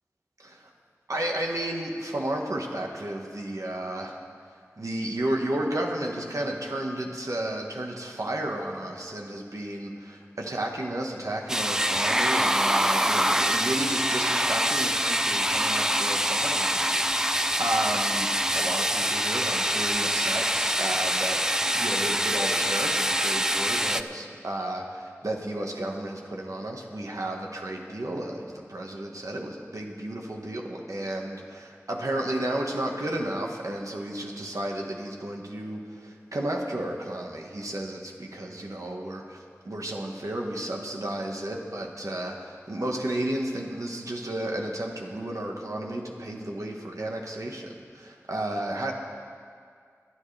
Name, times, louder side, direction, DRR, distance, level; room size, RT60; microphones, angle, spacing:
voice 1, 1.1-4.2 4.8-21.4 21.7-48.9, right 1 dB, 85° right, 0 dB, 1.5 m, -32 dB
sound 1, 11.5-24.0, equal, 10° right, 0.4 m, -25 dB
25.5 x 9.6 x 3.4 m, 2.1 s
wide cardioid pair, 45°, 5 cm